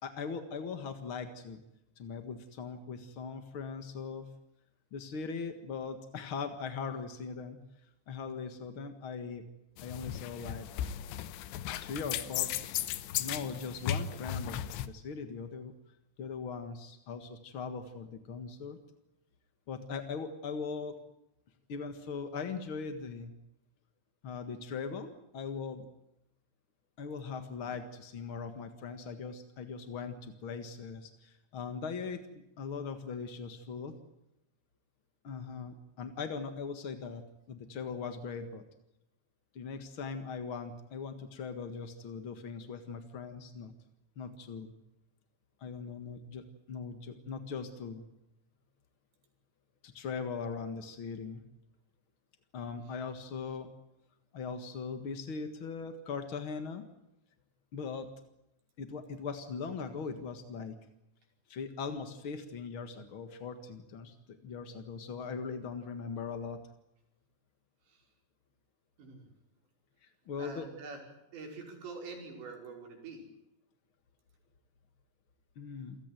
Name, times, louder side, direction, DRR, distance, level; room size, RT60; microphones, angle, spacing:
voice 1, 0.0-1.6 2.0-4.3 4.9-7.6 8.1-9.4 9.8-10.7 11.8-12.6 13.2-15.7 16.2-18.8 19.7-21.0 21.7-23.3 24.2-25.9 27.0-32.2 32.6-34.0 35.2-37.2 37.5-38.6 39.5-43.7 44.2-44.7 45.6-48.0 49.8-51.4 52.5-53.7 54.3-56.8 57.7-58.1 58.8-60.8 61.5-66.6 70.3-70.7 75.5-76.0, left 5 dB, 55° left, 8 dB, 1.4 m, -40 dB
sound 1, 9.8-14.9, left 10 dB, 90° left, 3.4 m, -36 dB
voice 2, 69.0-69.3 70.4-71.0 71.3-73.2, right 4 dB, 85° right, 3 dB, 7.5 m, -45 dB
28.5 x 17.5 x 9.2 m, 0.85 s
omnidirectional pair, 5.0 m